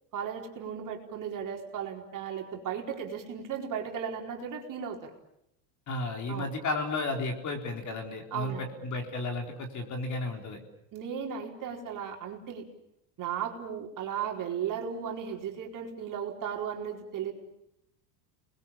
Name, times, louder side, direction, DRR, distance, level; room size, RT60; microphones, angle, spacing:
voice 1, 0.1-5.1 6.3-6.5 8.3-8.7 10.9-12.7 13.2-17.3, right 8 dB, 40° right, 1 dB, 4.6 m, -36 dB
voice 2, 5.9-10.6, left 2 dB, 35° left, 4 dB, 4.1 m, -33 dB
29.0 x 21.0 x 8.7 m, 0.81 s
supercardioid pair, 130°, 49 cm